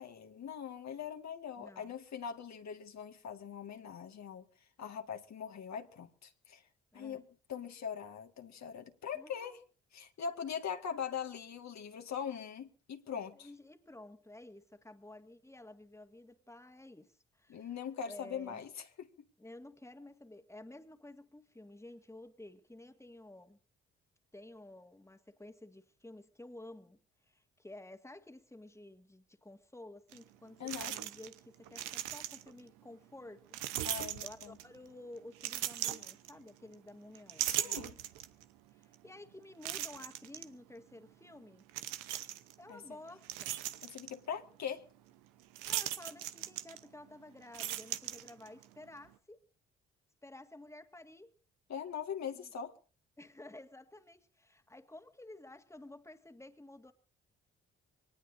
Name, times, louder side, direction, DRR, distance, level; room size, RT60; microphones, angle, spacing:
voice 1, 0.0-4.4 4.8-6.6 6.9-9.6 9.9-13.5 17.5-18.7 19.0-19.1 30.6-31.0 33.8-34.6 37.5-38.0 42.7-42.8 43.8-44.9 51.7-52.7, left 7 dB, 60° left, 1.9 m, -41 dB
voice 2, 1.6-1.9 6.9-7.2 9.1-9.6 10.7-10.8 13.3-17.7 18.0-18.6 19.4-23.6 24.3-27.0 27.2-33.9 34.2-37.8 38.7-41.6 42.6-43.6 45.7-49.5 50.2-51.4 52.3-52.5 53.2-56.9, left 1 dB, 10° left, 1.9 m, -52 dB
sound 1, 30.1-30.2 30.7-31.4 31.7-32.6 33.5-34.8 35.4-36.7 37.1-38.4 38.9-39.0 39.6-40.5 41.7-42.5 43.0-44.1 45.5-47.1 47.4-48.7, right 13 dB, 85° right, 0.9 m, -38 dB
24.5 x 19.0 x 2.7 m
hypercardioid pair, 45°, 31 cm